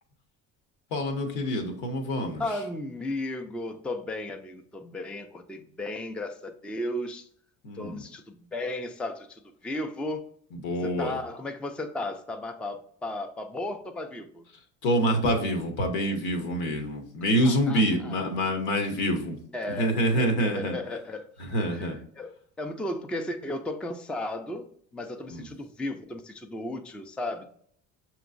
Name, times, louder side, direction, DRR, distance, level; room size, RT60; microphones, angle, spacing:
voice 1, 0.9-2.4 7.6-8.0 10.5-11.2 14.8-19.4 19.7-20.8 21.4-22.0 25.3-25.4, equal, 80° left, 4 dB, 1.0 m, -26 dB
voice 2, 2.4-7.3 7.7-10.3 10.8-14.4 17.4-18.2 19.5-21.3 21.7-27.5, left 1 dB, 5° left, 6 dB, 0.4 m, -35 dB
5.9 x 3.0 x 2.5 m, 0.63 s
supercardioid pair, 75°, 37 cm